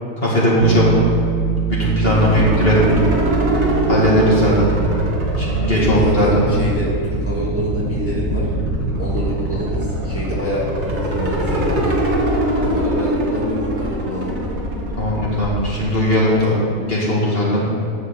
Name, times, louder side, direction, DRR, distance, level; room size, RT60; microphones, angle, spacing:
voice 1, 0.2-0.9 1.8-2.9 3.9-4.7 5.4-6.4 15.0-16.5 16.8-17.7, left 1 dB, 40° left, -6 dB, 2.3 m, -17 dB
Bass guitar, 0.6-10.5, right 9 dB, 80° right, 1.2 m, -25 dB
sound 1, 2.0-15.8, right 1 dB, 50° right, 1.6 m, -23 dB
voice 2, 2.2-2.7 4.3-4.6 5.7-8.5 9.0-12.0 12.6-14.4, equal, 10° right, -6 dB, 1.9 m, -26 dB
12.0 x 4.6 x 7.5 m, 2.5 s
omnidirectional pair, 1.6 m